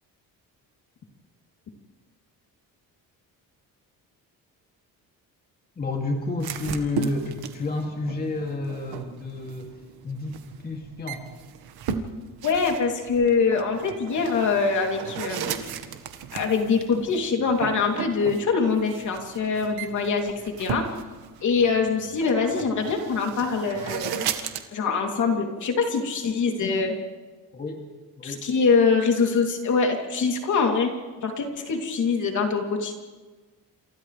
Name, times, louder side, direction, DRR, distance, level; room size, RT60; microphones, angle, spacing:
voice 1, 5.8-9.8 10.0-11.2 27.5-27.8 28.2-28.5, left 2 dB, 25° left, 0 dB, 2.6 m, -30 dB
sound 1, 6.4-24.6, right 7 dB, 85° right, 1.7 m, -36 dB
voice 2, 12.4-15.7 16.3-20.8 21.4-24.2 24.7-26.9 28.2-30.9 31.2-32.9, left 5 dB, 55° left, 2 dB, 3.1 m, -24 dB
28.5 x 27.5 x 3.4 m, 1.3 s
cardioid pair, 155°, 36 cm